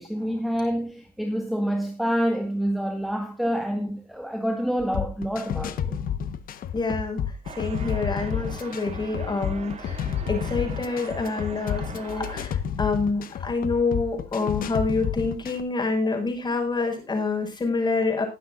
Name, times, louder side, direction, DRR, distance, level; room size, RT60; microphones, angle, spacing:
voice 1, 0.0-6.0, equal, ahead, 1.9 m, -27 dB
sound 1, 4.8-15.6, left 8 dB, 55° left, 1.4 m, -30 dB
voice 2, 6.7-18.3, left 3 dB, 25° left, 6.1 m, -27 dB
sound 2, 7.4-12.4, right 6 dB, 40° right, 2.3 m, -41 dB
20.5 x 9.4 x 2.6 m
cardioid pair, 110°, 17 cm